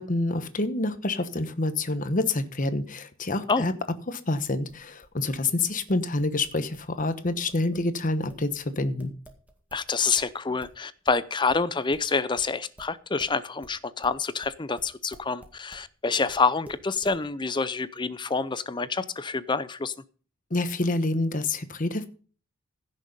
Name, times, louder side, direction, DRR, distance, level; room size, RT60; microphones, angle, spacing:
voice 1, 0.0-3.7 4.1-9.1 20.5-22.1, left 2 dB, 40° left, 1.1 m, -27 dB
sound 1, 4.3-9.9 10.2-15.9 16.3-17.2, right 1 dB, 5° right, 2.0 m, -51 dB
voice 2, 9.7-19.9, left 4 dB, 20° left, 0.5 m, -27 dB
15.5 x 6.6 x 5.4 m
head